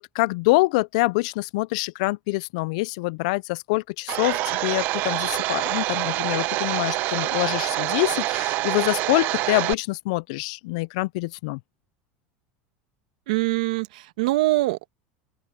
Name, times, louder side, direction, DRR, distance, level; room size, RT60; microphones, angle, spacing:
voice 1, 0.0-11.6, left 23 dB, 70° left, 0.4 m, -25 dB
Domestic sounds home sounds, 4.1-9.7, right 18 dB, 50° right, 0.8 m, -26 dB
voice 2, 13.3-14.9, right 19 dB, 85° right, 1.4 m, -23 dB
open air
supercardioid pair, 140°, 4 cm